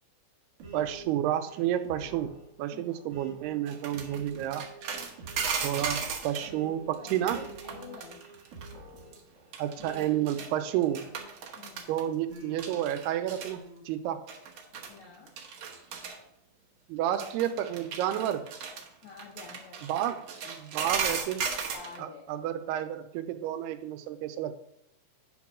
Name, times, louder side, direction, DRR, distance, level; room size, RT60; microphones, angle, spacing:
sound 1, 0.6-11.7 12.3-13.8, right 3 dB, 50° right, 2.5 m, -48 dB
voice 1, 0.7-2.3 2.6-4.7 5.6-7.5 9.6-11.0 11.9-13.6 13.9-14.2 16.9-18.5 19.8-21.4 22.0-24.6, right 11 dB, 85° right, 9 dB, 2.6 m, -30 dB
sound 2, 3.7-6.5 6.9-8.7 9.0-9.2 9.5-10.5 10.8-12.0 12.4-13.5 14.3-15.0 15.3-16.2 17.1-22.0, right 6 dB, 65° right, 1.6 m, -36 dB
voice 2, 7.0-8.2 10.9-11.1 11.6-12.0 14.7-15.4 19.0-19.9 20.9-21.4 21.7-22.3, left 5 dB, 75° left, 0 dB, 1.7 m, -49 dB
9.3 x 4.3 x 6.0 m, 0.74 s
omnidirectional pair, 4.6 m